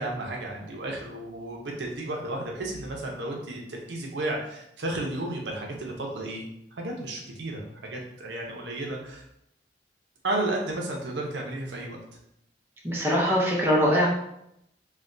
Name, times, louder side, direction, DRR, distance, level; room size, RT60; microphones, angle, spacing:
voice 1, 0.0-6.4 6.8-9.2 10.2-12.0, right 2 dB, 75° right, 0 dB, 0.6 m, -33 dB
voice 2, 12.8-14.1, equal, 15° right, -4 dB, 0.6 m, -22 dB
3.2 x 2.1 x 2.5 m, 0.77 s
head